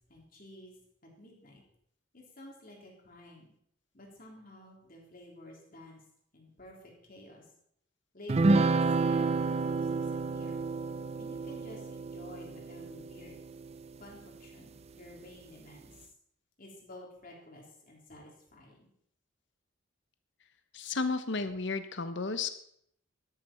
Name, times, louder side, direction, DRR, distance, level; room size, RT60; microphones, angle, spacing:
voice 1, 0.1-0.7 1.2-1.6 2.1-3.5 3.9-6.0 6.3-6.8 7.0-7.4 8.1-10.6 11.2-13.3 14.0-16.1 16.6-18.9, left 1 dB, 45° left, -1 dB, 3.5 m, -51 dB
sound 1, 8.3-14.0, right 3 dB, 30° right, 0.4 m, -30 dB
voice 2, 20.7-22.5, left 3 dB, 60° left, 10 dB, 1.0 m, -33 dB
12.0 x 11.5 x 4.4 m, 0.70 s
head